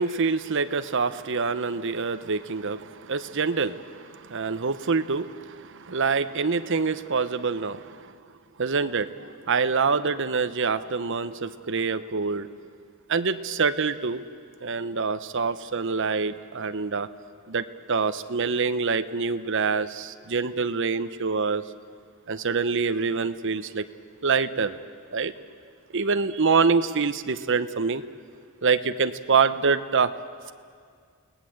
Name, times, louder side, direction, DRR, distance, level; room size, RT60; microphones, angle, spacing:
voice 1, 0.0-8.1 8.6-12.5 13.1-14.2 14.6-17.1 17.5-21.6 22.3-23.8 24.2-24.8 25.1-25.3 25.9-28.0 28.6-30.1, right 5 dB, 60° right, 11 dB, 0.9 m, -26 dB
30.0 x 18.5 x 7.9 m, 2.1 s
head